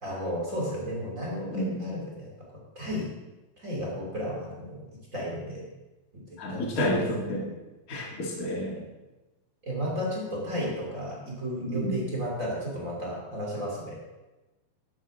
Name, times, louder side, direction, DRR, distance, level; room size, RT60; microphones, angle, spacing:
voice 1, 0.0-2.3 2.7-3.1 3.6-4.8 5.1-5.6 6.1-6.2 6.5-7.0 8.5-8.7 9.6-14.0, equal, 25° right, -4 dB, 2.1 m, -33 dB
voice 2, 6.4-7.4 7.9-8.8 11.7-12.0, left 1 dB, 35° left, -2 dB, 1.3 m, -30 dB
13.5 x 10.5 x 3.8 m, 1.1 s
omnidirectional pair, 5.2 m